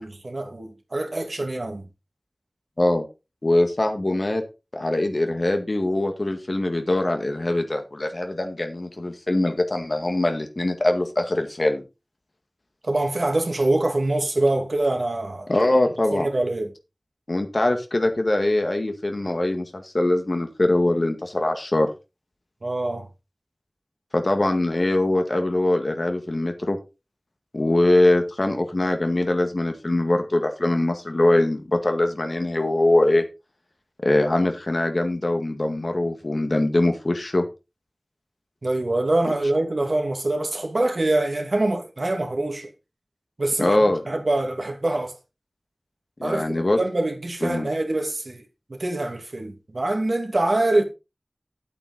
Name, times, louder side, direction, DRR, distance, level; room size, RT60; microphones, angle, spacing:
voice 1, 0.0-1.9 12.8-15.5 16.1-16.7 22.6-23.1 38.6-42.7 43.4-43.8 44.1-45.1 46.2-48.4 48.7-50.8, right 2 dB, 75° right, 2.5 m, -24 dB
voice 2, 3.4-4.4 4.7-11.8 15.5-16.3 17.3-21.9 24.1-26.8 27.5-33.2 34.0-37.4 43.6-44.0 46.2-46.8 47.4-47.7, left 1 dB, 60° left, 1.9 m, -22 dB
9.4 x 8.5 x 3.9 m
wide cardioid pair, 45°, 0 cm